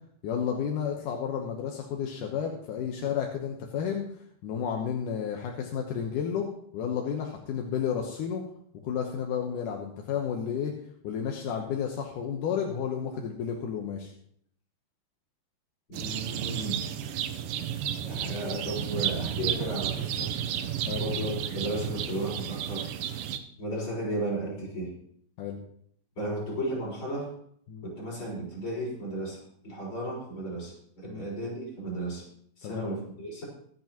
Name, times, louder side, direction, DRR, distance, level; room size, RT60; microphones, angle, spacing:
voice 1, 0.2-4.0 4.4-6.5 6.7-8.4 8.8-10.7 11.0-14.1 20.8-21.1 25.4-25.6 27.7-27.8 31.0-31.3 32.6-32.9, left 7 dB, 70° left, 1 dB, 2.1 m, -32 dB
voice 2, 15.9-16.9 18.0-20.3 21.0-22.9 23.6-25.0 26.2-27.3 27.8-32.3 32.6-33.4, right 1 dB, 30° left, -4 dB, 5.6 m, -34 dB
sound 1, 15.9-23.4, right 9 dB, 85° right, 1.9 m, -32 dB
23.0 x 8.3 x 3.0 m, 0.64 s
omnidirectional pair, 4.9 m